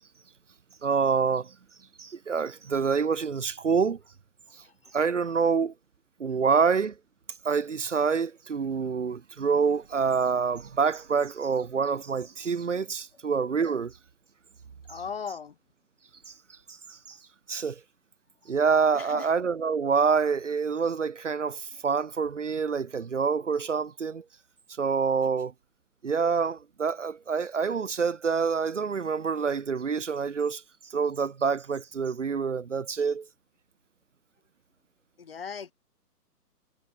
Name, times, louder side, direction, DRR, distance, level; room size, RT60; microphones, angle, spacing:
voice 1, 0.8-1.5 2.0-4.0 4.9-5.7 6.2-6.9 7.4-13.9 16.3-16.4 16.9-17.2 17.5-17.8 18.5-24.2 24.8-25.5 26.0-30.6 30.9-33.3, right 5 dB, 45° right, 1.8 m, -26 dB
voice 2, 14.9-15.5 18.9-19.3 35.2-35.7, left 6 dB, 35° left, 3.1 m, -37 dB
hypercardioid pair, 180°, 49 cm